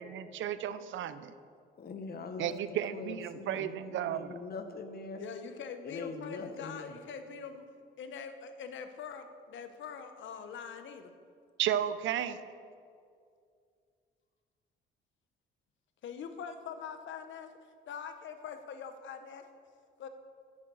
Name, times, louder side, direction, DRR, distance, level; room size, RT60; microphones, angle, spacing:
voice 1, 0.0-1.3 2.4-4.4 11.6-12.4, right 10 dB, 75° right, 13 dB, 0.7 m, -33 dB
voice 2, 1.8-2.5 2.9-5.2 5.8-6.9, left 4 dB, 50° left, 7 dB, 1.3 m, -42 dB
voice 3, 5.2-7.6 8.0-11.1 16.0-17.5 17.9-19.4 20.0-20.1, left 6 dB, 70° left, 8 dB, 1.1 m, -43 dB
10.5 x 10.0 x 6.4 m, 2.3 s
cardioid pair, 90°, 20 cm